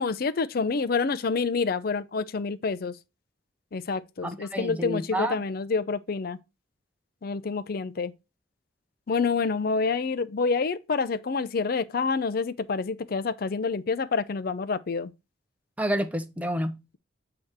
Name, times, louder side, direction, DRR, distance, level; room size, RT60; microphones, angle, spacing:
voice 1, 0.0-3.0 3.7-6.4 7.2-8.1 9.1-15.1, left 4 dB, 55° left, 0.5 m, -28 dB
voice 2, 4.2-5.4 15.8-16.8, equal, 10° right, 0.7 m, -29 dB
8.6 x 2.9 x 4.6 m
head